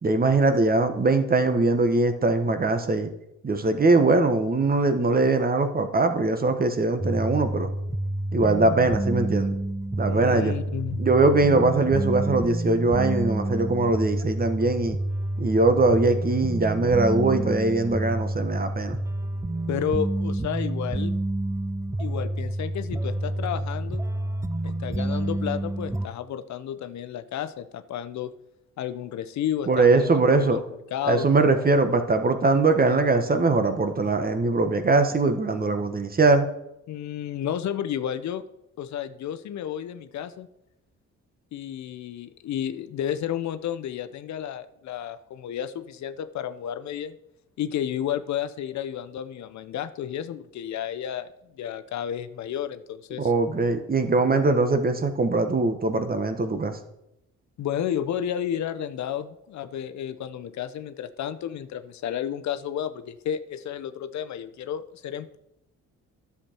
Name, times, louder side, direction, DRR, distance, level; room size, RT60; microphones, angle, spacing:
voice 1, 0.0-3.1 3.4-7.7 8.3-9.6 10.0-10.5 11.0-15.0 15.4-19.0 29.7-30.6 31.0-36.5 53.2-56.8, right 3 dB, 30° right, 8 dB, 1.2 m, -21 dB
sound 1, 7.0-26.1, right 1 dB, 10° right, 0.4 m, -29 dB
voice 2, 10.1-11.0 19.7-21.2 22.0-24.0 24.6-28.3 28.8-30.6 30.9-31.3 36.9-38.4 38.8-40.5 41.5-47.1 47.6-51.3 51.6-53.3 57.6-65.4, left 9 dB, 65° left, 11 dB, 0.7 m, -32 dB
11.0 x 7.1 x 4.4 m, 0.83 s
cardioid pair, 90°, 30 cm